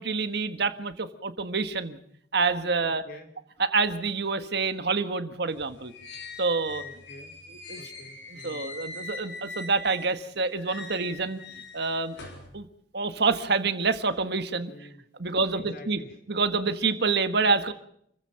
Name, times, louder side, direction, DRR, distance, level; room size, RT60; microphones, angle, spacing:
voice 1, 0.0-2.0 2.3-3.0 3.6-5.9 6.4-6.8 7.7-7.8 8.4-11.4 11.7-12.2 12.5-12.7 12.9-14.7 15.2-16.0 16.3-17.7, right 4 dB, 65° right, 9 dB, 1.6 m, -27 dB
voice 2, 2.8-3.3 6.8-7.3 7.7-8.7 14.7-15.0 15.5-16.2, left 1 dB, 55° left, 5 dB, 4.3 m, -48 dB
sound 1, 5.5-10.2 10.5-12.5, left 3 dB, 80° left, 6.8 m, -42 dB
29.0 x 15.5 x 5.8 m, 0.71 s
head